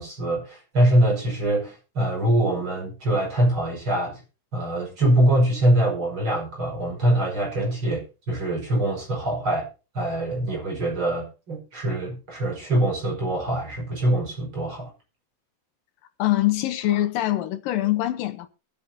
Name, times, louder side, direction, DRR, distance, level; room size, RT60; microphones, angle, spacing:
voice 1, 0.0-4.2 4.5-9.7 9.9-14.9, right 1 dB, 35° right, 5.7 m, -23 dB
voice 2, 16.2-18.5, left 15 dB, 85° left, 2.6 m, -23 dB
23.0 x 8.3 x 2.8 m
omnidirectional pair, 4.0 m